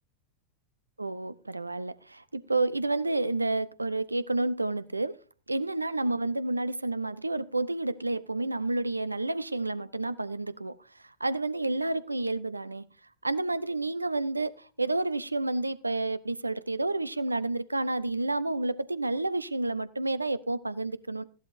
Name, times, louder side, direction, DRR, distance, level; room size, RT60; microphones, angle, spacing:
voice 1, 1.0-5.2 5.5-10.8 11.0-12.9 13.2-21.2, right 2 dB, 85° right, 0.6 m, -30 dB
15.0 x 11.5 x 2.6 m
figure-of-eight pair, 90°, 0 cm